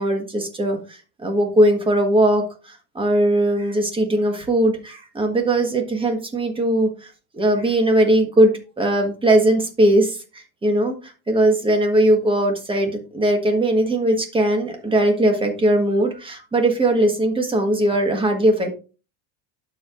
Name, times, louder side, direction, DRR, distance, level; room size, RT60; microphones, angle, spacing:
voice 1, 0.0-18.7, right 1 dB, 10° right, 3 dB, 1.4 m, -19 dB
12.0 x 4.7 x 2.5 m, 0.34 s
cardioid pair, 155°, 46 cm